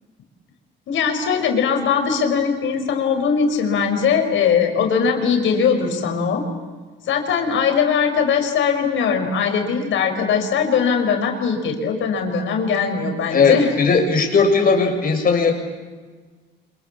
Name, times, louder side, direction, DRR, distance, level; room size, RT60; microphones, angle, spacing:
voice 1, 0.9-6.4 7.1-13.7, left 6 dB, 75° left, 4 dB, 5.6 m, -20 dB
voice 2, 13.3-15.5, left 4 dB, 45° left, 2 dB, 7.1 m, -17 dB
30.0 x 27.0 x 7.4 m, 1.4 s
cardioid pair, 90°, 20 cm